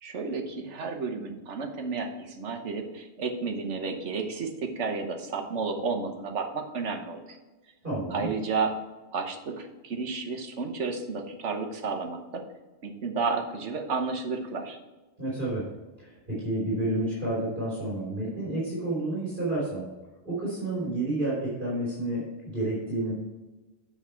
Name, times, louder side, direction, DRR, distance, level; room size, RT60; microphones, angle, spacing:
voice 1, 0.0-7.4 8.1-8.8 9.1-12.4 12.8-14.8, right 4 dB, 90° right, 4 dB, 1.4 m, -32 dB
voice 2, 7.8-8.3 15.2-15.6 16.0-19.9 20.2-23.1, right 1 dB, 45° right, -7 dB, 3.4 m, -30 dB
8.4 x 5.7 x 4.3 m, 1.2 s
omnidirectional pair, 1.2 m